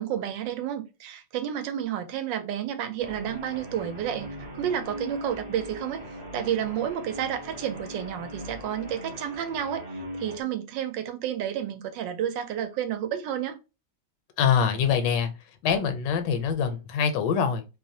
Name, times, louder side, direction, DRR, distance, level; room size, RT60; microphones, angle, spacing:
voice 1, 0.0-13.6, right 9 dB, 85° right, 1.3 m, -31 dB
Guitar, 3.0-10.4, equal, 30° right, 0.4 m, -40 dB
voice 2, 14.4-15.3 15.6-17.7, left 7 dB, 80° left, 1.2 m, -24 dB
3.0 x 2.0 x 2.7 m
omnidirectional pair, 1.9 m